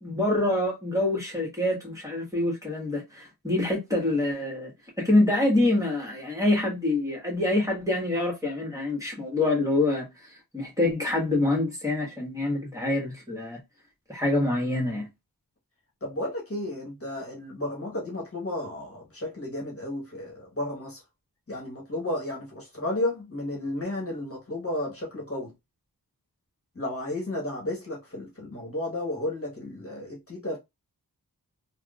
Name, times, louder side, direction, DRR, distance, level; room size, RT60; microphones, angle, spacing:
voice 1, 0.0-4.7 5.0-10.1 10.5-13.6 14.1-15.1, left 2 dB, 10° right, 1.5 m, -26 dB
voice 2, 16.0-21.0 21.5-25.5 26.7-30.6, left 1 dB, 35° left, 1.4 m, -33 dB
3.4 x 2.3 x 2.4 m
cardioid pair, 40°, 38 cm